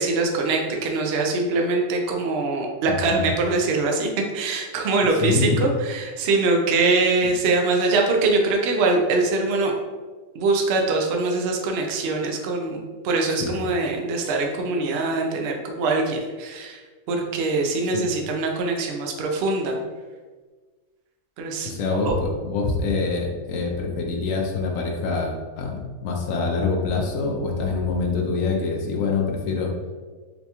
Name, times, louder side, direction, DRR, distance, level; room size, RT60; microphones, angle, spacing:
voice 1, 0.0-4.1 4.3-9.7 10.3-16.8 17.1-19.7 21.4-21.7 22.0-22.4, right 3 dB, 85° right, 1 dB, 0.5 m, -23 dB
voice 2, 2.9-3.3 5.2-5.6 7.2-7.3 13.4-13.6 17.9-18.0 21.6-29.7, left 4 dB, 65° left, 1 dB, 0.9 m, -25 dB
4.0 x 2.3 x 2.8 m, 1.4 s
omnidirectional pair, 1.6 m